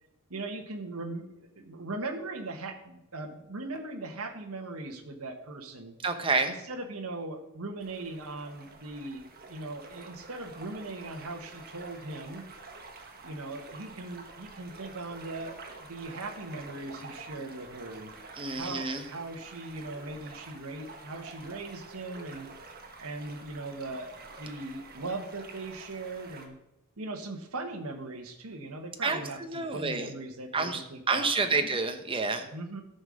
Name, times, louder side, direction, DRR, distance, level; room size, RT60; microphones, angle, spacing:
voice 1, 0.3-5.9 6.4-12.4 13.2-18.1 18.6-22.5 23.0-24.1 24.4-26.5 27.0-31.7 32.5-32.8, right 2 dB, 70° right, 4 dB, 1.4 m, -39 dB
voice 2, 6.0-6.6 18.4-19.0 29.0-30.1 30.5-30.8 31.1-32.5, right 4 dB, 25° right, 6 dB, 1.0 m, -29 dB
sound 1, 7.8-26.5, right 3 dB, 45° right, 1.4 m, -48 dB
13.0 x 5.5 x 6.4 m, 0.86 s
head